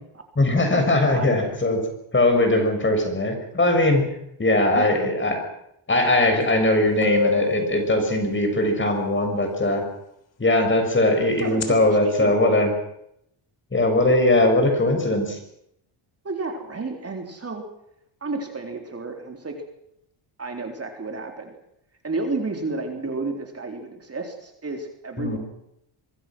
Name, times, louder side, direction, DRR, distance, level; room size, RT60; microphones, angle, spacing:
voice 1, 0.3-1.8 2.1-4.0 4.4-5.4 5.9-9.8 10.4-12.7 13.7-15.4 25.2-25.4, left 2 dB, 25° left, 5 dB, 6.8 m, -20 dB
voice 2, 1.1-1.6 4.7-5.0 11.4-12.3 16.2-17.6 18.2-19.6 20.4-21.6 22.0-25.4, right 3 dB, 30° right, 3 dB, 3.9 m, -31 dB
sound 1, 6.5-6.6 7.0-8.8 11.4-11.7, left 4 dB, 60° left, 3.7 m, -26 dB
24.5 x 24.0 x 6.3 m, 0.77 s
cardioid pair, 110°, 50 cm